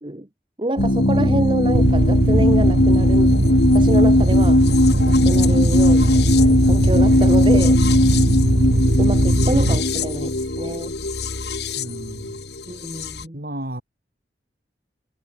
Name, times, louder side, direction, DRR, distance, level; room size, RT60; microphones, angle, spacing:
voice 1, 0.6-3.3 3.7-7.8 9.0-10.9 12.7-13.4, right 1 dB, 30° right, 1.4 m, -27 dB
sound 1, 0.8-13.2, left 1 dB, 70° left, 2.4 m, -19 dB
sound 2, 1.7-9.8, right 1 dB, 70° right, 2.3 m, -19 dB
voice 2, 8.0-8.4 11.8-12.4 13.3-13.8, right 1 dB, 55° right, 5.2 m, -33 dB
head